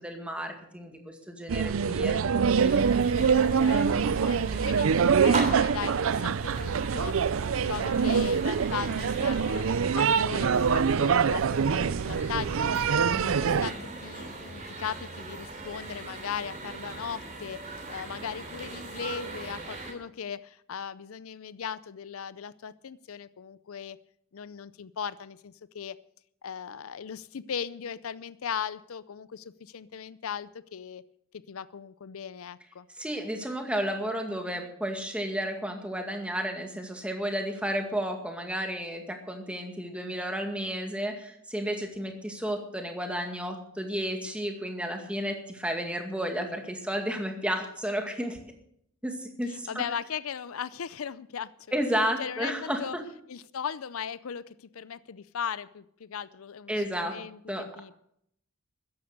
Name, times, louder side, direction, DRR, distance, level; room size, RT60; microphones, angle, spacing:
voice 1, 0.0-2.2 2.5-2.8 33.0-48.4 49.0-49.8 51.7-53.0 56.7-57.1 57.5-57.7, equal, 5° right, 4 dB, 2.1 m, -32 dB
sound 1, 1.5-13.7, right 6 dB, 70° right, 0.4 m, -25 dB
sound 2, 2.6-19.9, right 3 dB, 35° right, 3.2 m, -40 dB
voice 2, 3.5-7.1 7.7-9.6 9.9-12.9 13.3-17.6 17.9-24.0 24.3-26.0 26.4-31.0 31.5-32.9 49.5-51.8 52.2-53.0 53.3-58.0, left 7 dB, 75° left, 17 dB, 0.5 m, -38 dB
14.0 x 10.5 x 6.6 m, 0.70 s
head